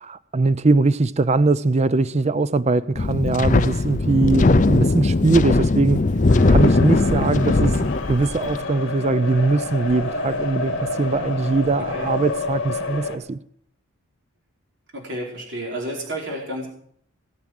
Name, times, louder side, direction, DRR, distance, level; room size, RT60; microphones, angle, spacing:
voice 1, 0.0-6.0 6.4-13.4, right 3 dB, 30° right, 0.5 m, -21 dB
Wind, 3.0-8.6, left 3 dB, 35° left, 0.5 m, -19 dB
sound 1, 6.3-13.2, left 2 dB, 55° left, 2.6 m, -29 dB
voice 2, 14.9-16.7, right 1 dB, 55° right, 4.6 m, -31 dB
19.0 x 7.4 x 7.8 m
head